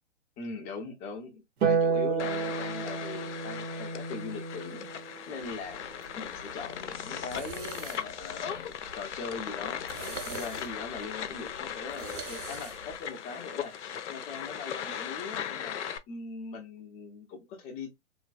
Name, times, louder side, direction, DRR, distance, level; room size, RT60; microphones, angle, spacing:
voice 1, 0.4-4.9 5.3-5.8 6.1-15.8 16.1-18.0, left 4 dB, 20° left, 0.6 m, -41 dB
Harp, 1.6-8.1 9.7-10.7, right 5 dB, 55° right, 0.9 m, -33 dB
sound 1, 2.2-16.0, left 9 dB, 65° left, 0.6 m, -38 dB
sound 2, 5.4-13.0, right 6 dB, 30° right, 0.7 m, -46 dB
3.2 x 2.2 x 2.4 m
hypercardioid pair, 125°, 37 cm